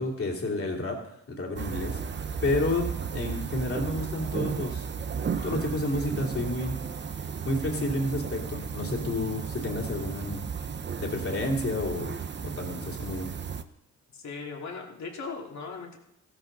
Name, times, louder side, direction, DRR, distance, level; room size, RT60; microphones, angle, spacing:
voice 1, 0.0-2.0 2.4-4.8 5.4-6.8 7.2-10.4 11.0-12.1 12.4-13.3, left 2 dB, 45° left, -1 dB, 3.0 m, -30 dB
sound 1, 1.6-13.6, right 6 dB, 35° right, 0.7 m, -34 dB
voice 2, 14.1-16.0, left 4 dB, 65° left, 0 dB, 2.6 m, -38 dB
15.5 x 13.0 x 4.0 m, 0.81 s
cardioid pair, 115°, 31 cm